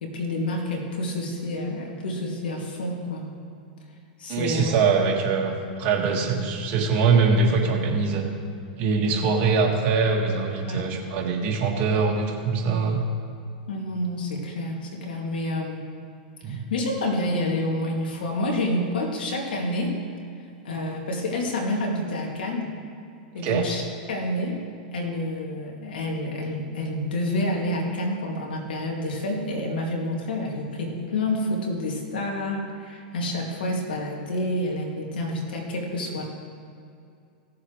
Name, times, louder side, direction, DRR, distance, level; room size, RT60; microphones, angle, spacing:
voice 1, 0.0-3.3 4.2-4.7 6.1-6.2 9.0-9.1 10.7-10.9 13.7-15.8 16.5-19.9 20.6-22.7 23.3-23.8 24.1-24.6 24.9-36.2, left 1 dB, 90° left, 0 dB, 2.4 m, -28 dB
voice 2, 4.3-8.3 8.8-13.0 16.4-16.6 23.4-23.7, right 4 dB, 45° right, 0 dB, 1.8 m, -23 dB
17.0 x 7.3 x 3.2 m, 2.4 s
hypercardioid pair, 130°, 5 cm